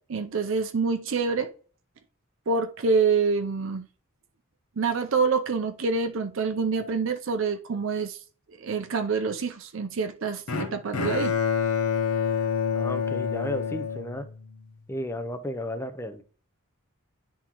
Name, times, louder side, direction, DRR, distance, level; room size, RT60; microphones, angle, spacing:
voice 1, 0.1-1.5 2.5-3.9 4.8-8.2 8.6-11.3, right 4 dB, 60° right, 0.5 m, -26 dB
Bowed string instrument, 10.5-14.7, left 6 dB, 80° left, 0.8 m, -27 dB
voice 2, 12.7-14.2 14.9-16.2, left 1 dB, 10° left, 0.6 m, -33 dB
10.0 x 3.7 x 2.9 m
head